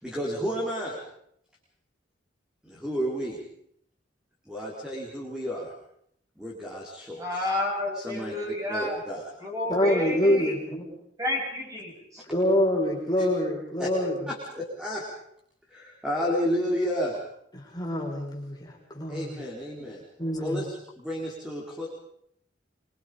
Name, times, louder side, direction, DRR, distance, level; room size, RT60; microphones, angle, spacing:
voice 1, 0.0-1.0 2.6-3.4 4.5-5.7 6.4-7.5 7.9-9.3 13.2-13.3 13.8-13.9 14.3-15.0 15.7-17.2 19.1-20.0 20.4-21.9, equal, 5° right, -3 dB, 4.7 m, -31 dB
voice 2, 7.2-9.0 9.4-10.6 11.2-12.2, left 1 dB, 20° right, -1 dB, 7.5 m, -30 dB
voice 3, 9.7-10.9 12.3-14.3 17.5-19.4 20.2-20.6, left 1 dB, 20° left, -1 dB, 5.1 m, -26 dB
25.5 x 25.0 x 5.3 m, 0.71 s
head